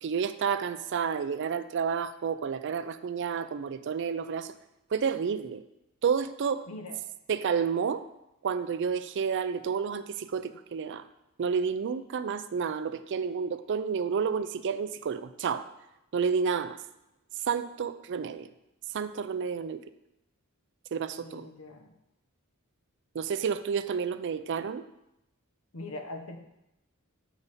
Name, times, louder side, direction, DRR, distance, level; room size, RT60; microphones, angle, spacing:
voice 1, 0.0-4.5 4.9-5.6 6.0-6.7 7.3-8.0 8.4-11.0 11.4-15.6 16.1-16.8 17.5-18.5 18.9-19.8 20.9-21.5 23.1-24.8, right 6 dB, 55° right, 12 dB, 0.4 m, -30 dB
voice 2, 6.7-7.0 21.2-21.9 25.7-26.4, left 2 dB, 65° left, 5 dB, 0.9 m, -41 dB
8.1 x 5.2 x 4.1 m, 0.87 s
head